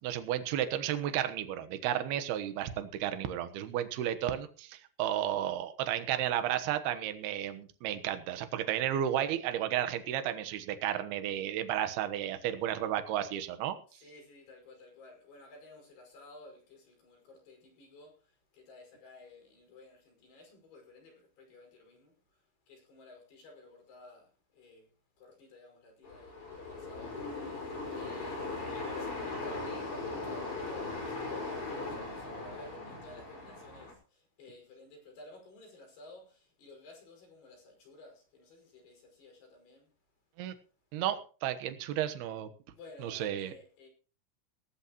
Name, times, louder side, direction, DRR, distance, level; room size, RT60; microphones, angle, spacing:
voice 1, 0.0-13.8 40.4-40.5 40.9-42.5 43.0-43.5, right 11 dB, 70° right, 2.5 m, -33 dB
voice 2, 13.9-24.9 25.2-27.6 28.0-39.9 41.6-41.8 42.7-43.9, left 2 dB, 55° left, 7.3 m, -54 dB
sound 1, 26.0-33.9, left 3 dB, 35° left, 6.0 m, -39 dB
19.5 x 13.5 x 3.0 m
omnidirectional pair, 5.9 m